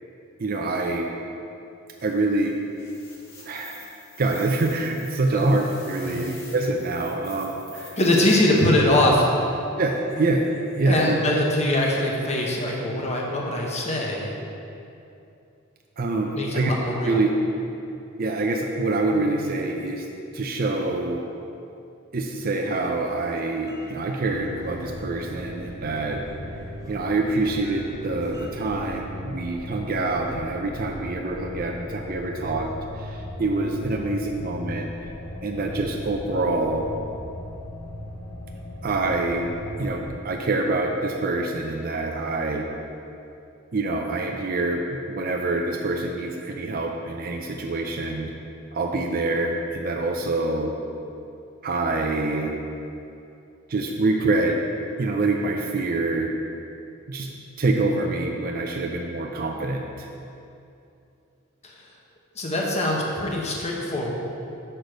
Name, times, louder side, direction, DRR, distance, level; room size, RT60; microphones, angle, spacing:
voice 1, 0.4-1.1 2.0-2.6 3.5-3.8 4.2-8.0 9.8-11.2 16.0-16.7 17.0-17.3 18.2-20.1 20.3-21.2 22.1-26.2 26.9-34.9 35.4-36.9 38.8-39.5 39.8-42.7 43.7-48.3 48.7-50.7 51.6-52.5 53.7-54.6 55.0-56.3 57.1-57.3 57.6-60.1, right 2 dB, 45° right, 1 dB, 0.5 m, -26 dB
sound 1, 2.0-9.2, left 3 dB, 65° left, 1.5 m, -47 dB
voice 2, 8.0-9.3 10.8-14.3 16.4-17.2 61.6-61.9 62.3-64.1, left 1 dB, 30° left, -2 dB, 1.1 m, -23 dB
sound 2, 22.7-28.9, right 4 dB, 15° right, 0.9 m, -44 dB
sound 3, 24.2-40.1, left 1 dB, 85° left, 1.2 m, -38 dB
6.7 x 6.2 x 5.0 m, 2.7 s
head